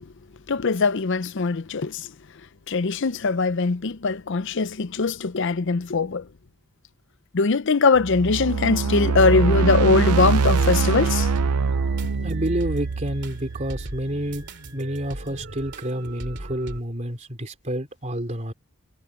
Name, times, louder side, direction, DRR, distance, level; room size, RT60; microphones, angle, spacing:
voice 1, 0.5-2.1 2.7-6.2 7.3-11.3, left 4 dB, 55° left, 0.6 m, -21 dB
sound 1, 8.0-14.2, right 4 dB, 90° right, 0.6 m, -23 dB
sound 2, 10.3-16.8, right 1 dB, 55° right, 2.8 m, -39 dB
voice 2, 12.2-14.5 14.7-18.5, right 1 dB, 30° right, 3.5 m, -29 dB
head